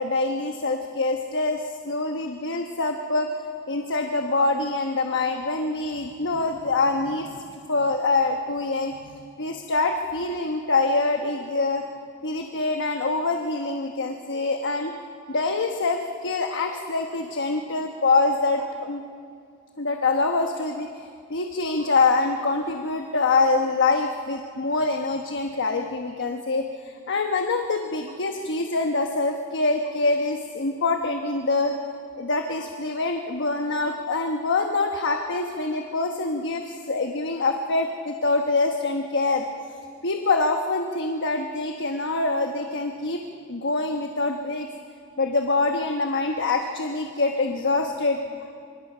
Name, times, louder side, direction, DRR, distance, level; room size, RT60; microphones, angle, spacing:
voice 1, 0.0-3.3 3.7-11.8 12.2-14.9 15.3-19.0 19.8-31.7 32.2-39.4 40.0-43.2 43.5-44.7 45.2-48.6, left 3 dB, 55° left, 4 dB, 1.1 m, -25 dB
25.5 x 24.5 x 5.6 m, 2.3 s
head